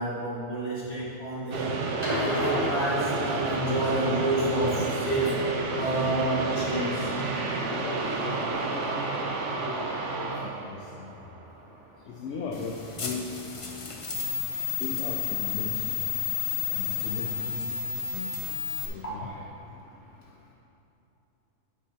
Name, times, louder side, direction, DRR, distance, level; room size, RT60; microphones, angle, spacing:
voice 1, 0.0-1.8 2.1-5.4 5.7-7.1 19.0-19.3, right 1 dB, 55° left, -7 dB, 2.1 m, -29 dB
sound 1, 1.5-11.8, right 3 dB, 75° right, 1.1 m, -30 dB
sound 2, 2.0-3.7 5.0-5.1, equal, 35° right, 1.3 m, -32 dB
voice 2, 7.7-9.3 9.7-9.9 10.1-10.3 10.6-11.1 12.1-13.3 14.8-16.0 16.7-17.7 18.1-18.3 18.9-19.4, left 4 dB, 75° left, 0 dB, 1.0 m, -37 dB
sound 3, 12.5-18.9, left 7 dB, 35° left, 0.6 m, -31 dB
10.0 x 7.5 x 2.8 m, 3.0 s
omnidirectional pair, 1.3 m